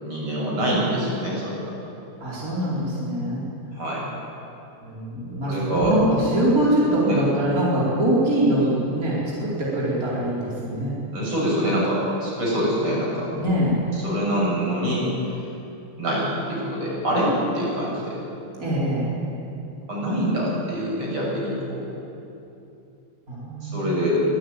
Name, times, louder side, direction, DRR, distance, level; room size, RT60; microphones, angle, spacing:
voice 1, 0.0-1.7 3.8-4.0 5.4-5.9 7.0-7.2 11.1-13.3 14.0-15.1 16.0-18.2 19.9-21.8 23.6-24.2, equal, 75° right, -5 dB, 8.2 m, -25 dB
voice 2, 2.2-3.4 4.8-10.9 13.4-13.8 18.6-19.1 23.3-23.9, right 1 dB, 40° right, -7 dB, 5.1 m, -23 dB
24.5 x 16.5 x 9.2 m, 2.8 s
omnidirectional pair, 2.4 m